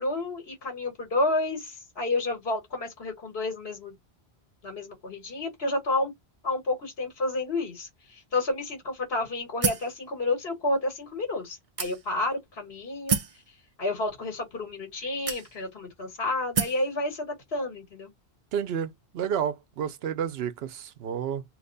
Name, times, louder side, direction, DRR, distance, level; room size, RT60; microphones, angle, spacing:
voice 1, 0.0-4.0 4.6-6.1 6.4-13.2 13.8-18.1, left 2 dB, 70° left, 1.6 m, -30 dB
sound 1, 9.6-10.0 10.7-10.8 11.8-12.3 13.1-13.4 14.4-14.5 15.3-15.8 16.5-16.9, right 6 dB, 45° right, 0.5 m, -28 dB
voice 2, 18.5-21.4, right 8 dB, 75° right, 0.8 m, -30 dB
2.9 x 2.1 x 3.8 m
omnidirectional pair, 1.1 m